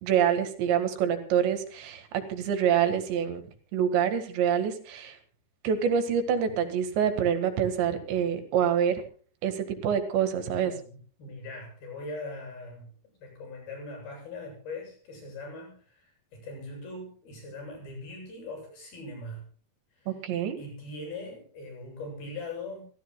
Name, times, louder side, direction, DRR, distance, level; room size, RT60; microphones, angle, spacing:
voice 1, 0.0-3.4 3.7-5.2 5.6-9.0 9.4-10.7 20.1-20.6, right 8 dB, 80° right, 8 dB, 4.2 m, -26 dB
voice 2, 10.5-12.9 13.2-19.5 19.9-20.2 20.6-22.8, left 2 dB, 60° left, 2 dB, 10.0 m, -41 dB
27.5 x 15.0 x 2.3 m, 0.41 s
omnidirectional pair, 5.0 m